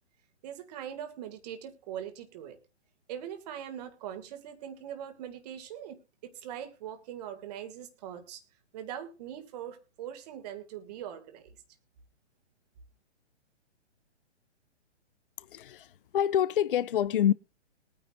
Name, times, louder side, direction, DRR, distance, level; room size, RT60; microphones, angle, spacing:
voice 1, 0.4-2.6 3.1-6.0 6.2-8.4 8.7-11.5, right 10 dB, 35° right, 2.0 m, -41 dB
voice 2, 15.4-17.3, left 10 dB, 50° left, 0.5 m, -27 dB
21.5 x 9.8 x 2.4 m
figure-of-eight pair, 125°, 35 cm